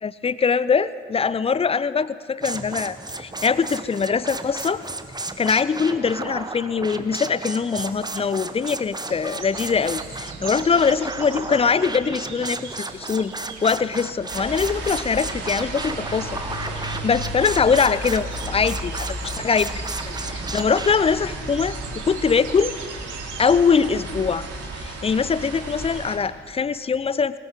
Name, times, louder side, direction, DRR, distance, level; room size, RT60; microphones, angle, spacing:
voice 1, 0.0-4.8 5.4-16.3 16.6-22.8 23.4-24.5 24.7-27.4, left 5 dB, 20° left, 17 dB, 0.4 m, -22 dB
sound 1, 2.4-20.9, right 3 dB, 10° right, 0.9 m, -34 dB
sound 2, 9.0-23.6, right 6 dB, 80° right, 1.2 m, -41 dB
sound 3, 14.3-26.2, right 1 dB, 45° right, 2.8 m, -33 dB
21.0 x 13.0 x 3.8 m, 2.3 s
figure-of-eight pair, 40°, 34 cm